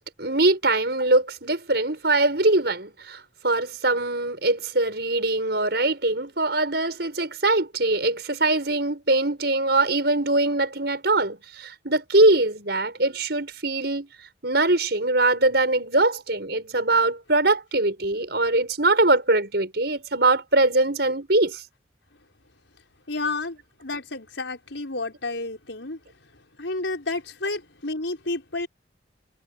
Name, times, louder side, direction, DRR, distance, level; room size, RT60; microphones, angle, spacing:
voice 1, 0.2-14.1 14.4-21.6, right 2 dB, 60° right, 6.4 m, -22 dB
voice 2, 23.1-28.7, left 2 dB, 80° left, 5.3 m, -31 dB
head